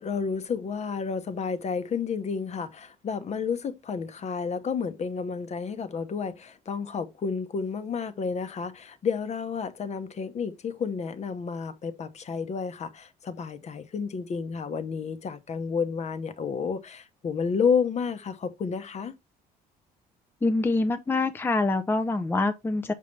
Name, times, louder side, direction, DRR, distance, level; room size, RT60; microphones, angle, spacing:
voice 1, 0.0-19.2, left 6 dB, 40° left, 1.0 m, -31 dB
voice 2, 20.4-22.9, left 2 dB, 15° left, 0.6 m, -25 dB
6.5 x 5.3 x 3.2 m
cardioid pair, 110°, 17 cm